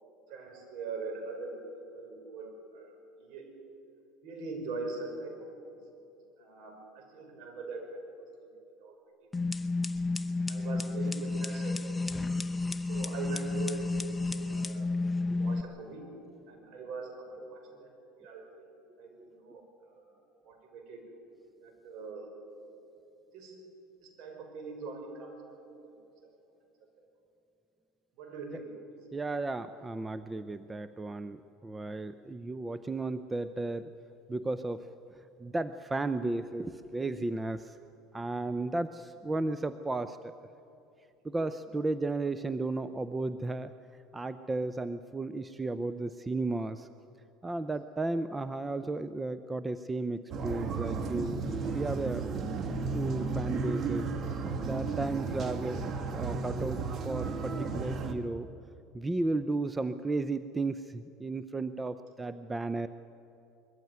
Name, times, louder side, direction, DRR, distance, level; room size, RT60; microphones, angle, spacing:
voice 1, 0.3-1.6 1.9-3.6 4.2-5.8 6.4-8.3 8.8-9.3 10.5-12.2 12.9-14.9 15.3-16.2 16.5-17.9 18.2-18.7 19.0-20.2 20.4-21.0 21.6-22.4 23.3-23.6 24.0-26.0 26.2-26.3 28.2-28.8, right 3 dB, 60° right, 3 dB, 5.6 m, -42 dB
sound 1, 9.3-15.6, left 3 dB, 15° left, 0.8 m, -32 dB
voice 2, 29.1-33.9 34.3-37.8 38.1-40.4 41.2-43.7 44.1-46.9 47.4-52.4 52.9-54.1 54.6-55.8 56.1-58.5 58.9-62.9, right 2 dB, 15° right, 12 dB, 0.6 m, -34 dB
sound 2, 50.3-58.2, right 4 dB, 40° right, 1.7 m, -34 dB
21.5 x 14.5 x 9.5 m, 2.7 s
supercardioid pair, 105°, 0 cm